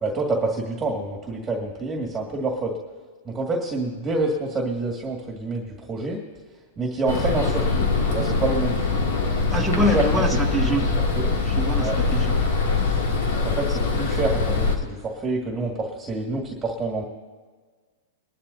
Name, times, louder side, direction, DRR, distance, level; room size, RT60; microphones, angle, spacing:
voice 1, 0.0-2.7 3.3-6.2 6.8-8.9 9.5-10.0 10.3-10.7 11.1-11.3 11.8-12.0 13.3-17.0, right 3 dB, 15° right, -1 dB, 2.1 m, -27 dB
sound 1, 7.1-14.8, left 4 dB, 70° left, 2.5 m, -23 dB
voice 2, 9.3-10.9 11.4-12.4, equal, 5° left, 3 dB, 1.6 m, -25 dB
23.0 x 12.0 x 2.8 m, 1.4 s
hypercardioid pair, 140°, 0 cm